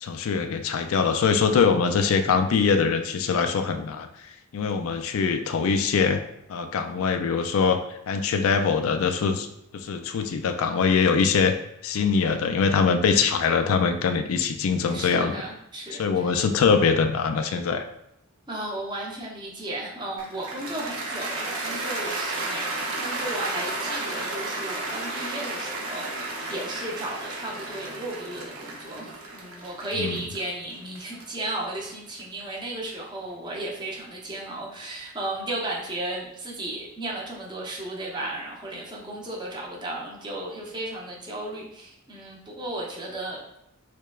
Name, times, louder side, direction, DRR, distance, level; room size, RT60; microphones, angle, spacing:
voice 1, 0.0-4.1 4.5-6.2 6.5-9.5 9.7-11.5 11.8-15.3 16.0-17.9 30.0-30.2, left 5 dB, 75° left, 7 dB, 0.4 m, -23 dB
voice 2, 14.9-16.4 18.5-43.6, right 1 dB, 20° right, -3 dB, 0.7 m, -34 dB
Cheering / Applause, 20.2-32.4, right 2 dB, 80° right, 0.8 m, -33 dB
6.4 x 2.2 x 2.3 m, 0.80 s
head